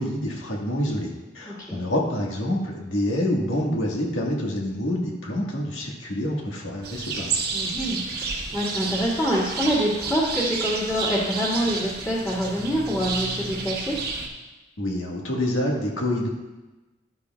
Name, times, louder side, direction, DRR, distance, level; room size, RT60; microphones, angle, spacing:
voice 1, 0.0-7.4 14.8-16.3, left 1 dB, 90° left, -1 dB, 1.6 m, -27 dB
voice 2, 1.5-1.8 7.5-14.0, equal, 20° left, -9 dB, 2.0 m, -26 dB
sound 1, 6.8-14.3, right 4 dB, 50° right, 1.1 m, -30 dB
11.5 x 9.8 x 2.3 m, 1.2 s
head